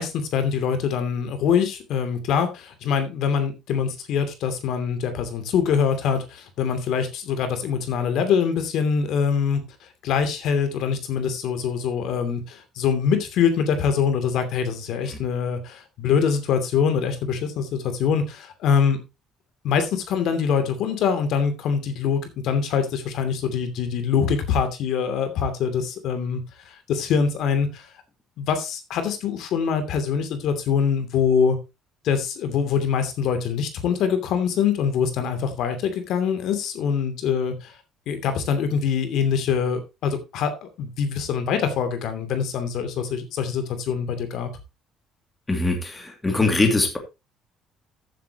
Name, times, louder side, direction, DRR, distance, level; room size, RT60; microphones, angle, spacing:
voice 1, 0.0-9.6 10.0-19.0 19.6-27.9 28.4-31.6 32.0-37.7 38.1-44.5, left 6 dB, 60° left, 8 dB, 2.8 m, -24 dB
voice 2, 45.5-47.0, left 2 dB, 10° left, 3 dB, 2.4 m, -22 dB
14.5 x 8.5 x 2.9 m, 0.25 s
cardioid pair, 175°, 0 cm